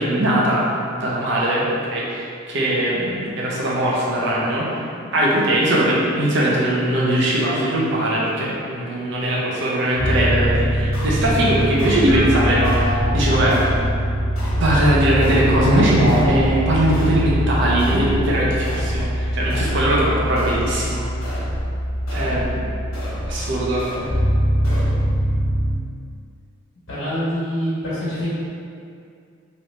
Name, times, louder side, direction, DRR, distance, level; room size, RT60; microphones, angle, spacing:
voice 1, 0.0-4.8 5.1-13.6 14.6-21.0 22.1-22.6 23.3-23.8, right 1 dB, 60° right, -5 dB, 0.7 m, -20 dB
sound 1, 9.9-25.8, equal, 55° left, 1.1 m, -22 dB
sound 2, 10.9-11.4 11.8-12.2 12.6-13.1 13.5-13.9 14.4-14.8 15.2-15.6 16.1-16.5 16.9-17.4 17.8-18.2 18.6-19.1 19.5-19.9 20.4-20.8 21.2-21.6 22.1-22.5 22.9-23.4 23.8-24.2 24.6-24.9, left 1 dB, 90° left, 0.9 m, -32 dB
voice 2, 26.9-28.3, equal, 70° left, -11 dB, 1.3 m, -25 dB
3.1 x 3.1 x 2.8 m, 2.4 s
head